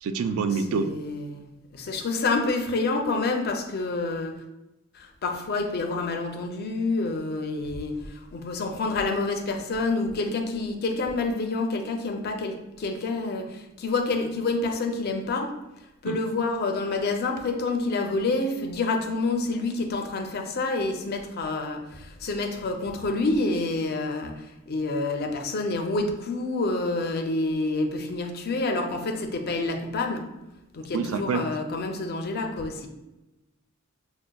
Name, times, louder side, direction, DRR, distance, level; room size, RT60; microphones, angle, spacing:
voice 1, 0.0-0.9 16.0-16.2 30.9-31.5, right 5 dB, 90° right, 14 dB, 0.3 m, -27 dB
voice 2, 0.7-4.4 4.9-15.6 16.0-30.3 30.7-32.9, left 3 dB, 50° left, 4 dB, 0.5 m, -28 dB
6.1 x 2.1 x 2.2 m, 0.98 s
head